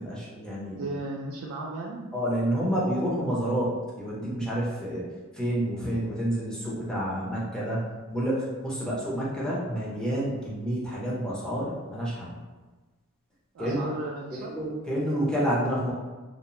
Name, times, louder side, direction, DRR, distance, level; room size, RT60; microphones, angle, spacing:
voice 1, 0.0-0.8 2.1-5.0 5.3-7.8 8.1-12.3 13.6-13.9 14.3-15.9, equal, 5° left, -7 dB, 0.6 m, -29 dB
voice 2, 0.7-2.1 13.5-14.5, right 2 dB, 75° right, -3 dB, 0.3 m, -35 dB
2.6 x 2.1 x 2.9 m, 1.3 s
head